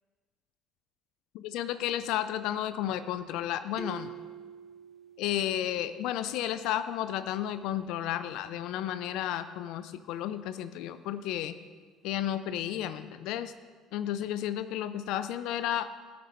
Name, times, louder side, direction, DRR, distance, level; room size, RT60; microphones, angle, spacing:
voice 1, 1.3-4.1 5.2-11.6 12.0-13.5 13.9-16.1, left 11 dB, 75° left, 12 dB, 0.4 m, -32 dB
sound 1, 3.8-6.3, right 5 dB, 15° right, 0.9 m, -46 dB
12.5 x 5.3 x 4.3 m, 1.5 s
supercardioid pair, 75°, 0 cm